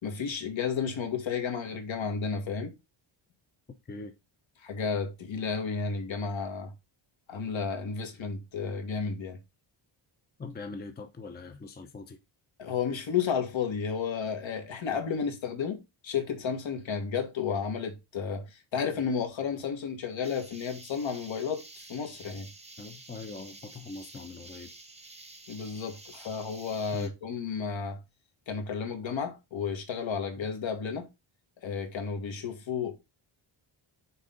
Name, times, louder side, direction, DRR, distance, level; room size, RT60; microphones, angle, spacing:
voice 1, 0.0-2.7 4.6-6.7 7.3-9.4 12.6-21.6 21.9-22.5 25.5-28.0 28.5-31.1 31.6-33.0, left 6 dB, 70° left, 1.7 m, -32 dB
voice 2, 10.4-12.2 22.8-24.7 26.9-27.1 30.4-30.5, left 3 dB, 20° left, 0.6 m, -42 dB
sound 1, 20.2-27.1, right 2 dB, 15° right, 0.8 m, -50 dB
6.6 x 4.4 x 3.9 m
wide cardioid pair, 180°, 49 cm